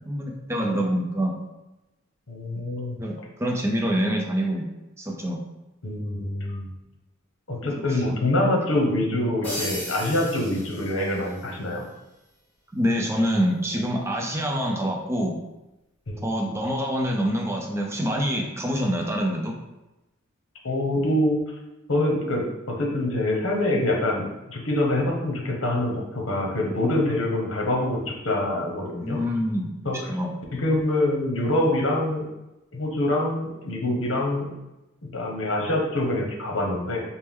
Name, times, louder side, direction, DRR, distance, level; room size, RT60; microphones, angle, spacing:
voice 1, 0.1-1.4 3.0-4.7 5.0-5.4 7.6-8.0 12.7-15.4 16.2-19.6 29.0-30.3, equal, 15° right, 0 dB, 0.5 m, -26 dB
voice 2, 2.3-3.0 5.8-6.7 7.5-11.8 16.1-16.3 20.6-21.4 21.9-29.2 29.8-30.1 30.5-32.2 32.7-34.5 35.1-37.0, left 1 dB, 75° left, 0 dB, 0.9 m, -25 dB
sound 1, 9.4-11.5, left 1 dB, 10° left, 1.2 m, -35 dB
4.4 x 2.1 x 3.6 m, 0.97 s
head